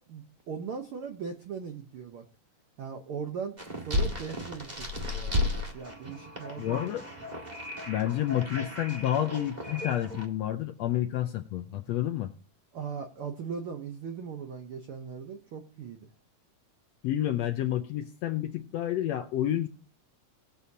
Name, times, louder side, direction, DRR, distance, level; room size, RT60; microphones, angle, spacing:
voice 1, 0.0-2.2 2.8-3.6 3.8-5.5 5.7-6.9 12.7-16.1, right 6 dB, 80° right, 5 dB, 1.2 m, -39 dB
sound 1, 3.6-10.3, left 2 dB, 20° right, 1.0 m, -34 dB
voice 2, 6.6-7.0 7.9-12.3 17.0-19.7, left 12 dB, 75° left, 6 dB, 1.6 m, -29 dB
20.5 x 7.1 x 2.7 m, 0.39 s
omnidirectional pair, 3.6 m